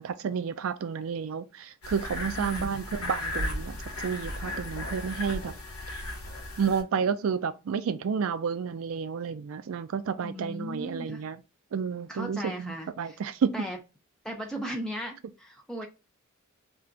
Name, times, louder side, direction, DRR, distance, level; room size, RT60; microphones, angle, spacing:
voice 1, 0.0-3.8 4.0-5.5 5.9-6.0 6.6-11.4 11.7-13.6, right 6 dB, 70° right, 0.4 m, -31 dB
sound 1, 1.8-6.8, left 1 dB, 85° left, 0.9 m, -35 dB
voice 2, 2.3-2.8 10.2-11.2 12.1-13.2 13.5-13.8 14.2-15.9, equal, 5° left, 0.4 m, -37 dB
2.4 x 2.2 x 3.8 m
head